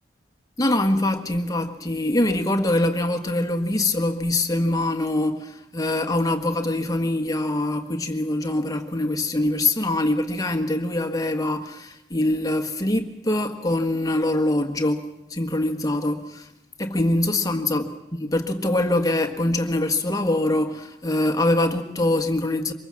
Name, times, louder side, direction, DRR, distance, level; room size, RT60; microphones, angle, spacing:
voice 1, 0.6-15.0 15.3-16.5 16.8-22.7, left 1 dB, 20° left, 1.5 m, -24 dB
25.0 x 21.5 x 7.5 m
head